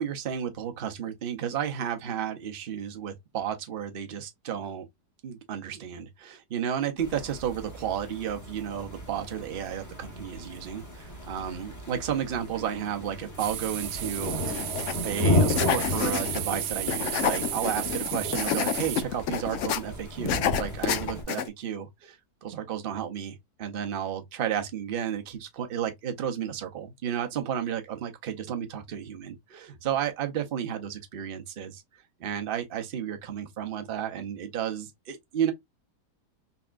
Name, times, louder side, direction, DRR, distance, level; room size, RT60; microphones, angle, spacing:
voice 1, 0.0-4.9 5.2-14.7 15.0-31.8 32.2-35.5, right 9 dB, 50° right, 0.7 m, -32 dB
sound 1, 7.0-21.2, left 1 dB, 15° left, 0.9 m, -33 dB
sound 2, 13.4-19.0, right 11 dB, 80° right, 1.2 m, -34 dB
sound 3, 14.4-14.9 15.2-16.5 16.9-19.8 20.3-21.5, left 9 dB, 70° left, 0.7 m, -29 dB
4.0 x 3.4 x 2.4 m
omnidirectional pair, 1.8 m